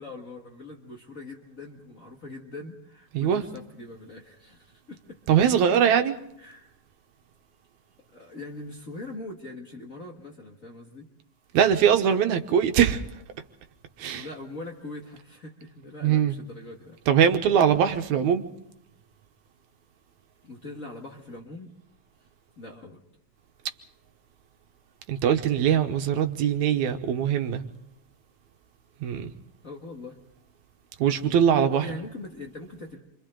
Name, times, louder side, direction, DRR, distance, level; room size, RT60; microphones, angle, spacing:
voice 1, 0.0-5.2 6.4-6.7 8.1-11.1 14.1-17.0 20.4-21.7 22.6-23.0 29.6-30.2 31.6-33.0, left 2 dB, 35° left, 1.7 m, -42 dB
voice 2, 5.3-6.2 11.5-13.2 14.0-14.3 16.0-16.4 17.1-18.5 25.1-27.6 29.0-29.3 31.0-31.9, right 8 dB, 80° right, 2.4 m, -22 dB
29.0 x 25.0 x 3.8 m
omnidirectional pair, 3.3 m